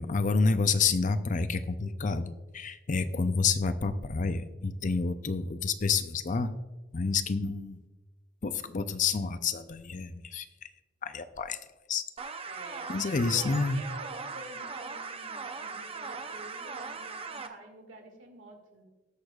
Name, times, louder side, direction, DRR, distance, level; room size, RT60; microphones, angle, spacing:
voice 1, 0.0-6.5 6.9-7.8 8.4-10.5 11.0-11.6 11.9-12.0 12.9-13.8, left 4 dB, 40° left, 11 dB, 0.5 m, -29 dB
sound 1, 12.2-17.5, right 4 dB, 30° right, 0.6 m, -39 dB
voice 2, 12.5-18.9, right 1 dB, 85° right, 2 dB, 2.0 m, -48 dB
19.0 x 6.5 x 2.4 m, 1.2 s
head